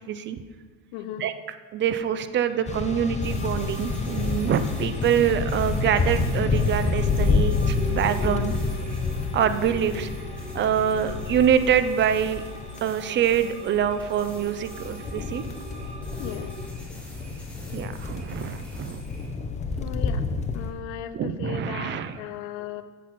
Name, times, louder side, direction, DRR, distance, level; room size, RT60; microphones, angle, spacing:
voice 1, 0.1-0.4 1.2-1.3 1.7-8.6 9.3-10.1 10.5-12.4 12.8-15.4 17.7-19.0 21.1-22.2, right 9 dB, 30° right, 11 dB, 0.5 m, -25 dB
voice 2, 0.9-1.2 16.2-16.6 19.8-20.2 20.5-22.8, left 11 dB, 60° left, 11 dB, 0.6 m, -36 dB
sound 1, 2.4-16.7, right 1 dB, 15° right, 1.4 m, -41 dB
sound 2, 2.7-12.8 14.5-20.7, left 4 dB, 20° left, 0.6 m, -28 dB
sound 3, 3.2-19.3, left 1 dB, 5° left, 2.1 m, -43 dB
8.1 x 6.2 x 4.2 m, 1.4 s
supercardioid pair, 105°, 36 cm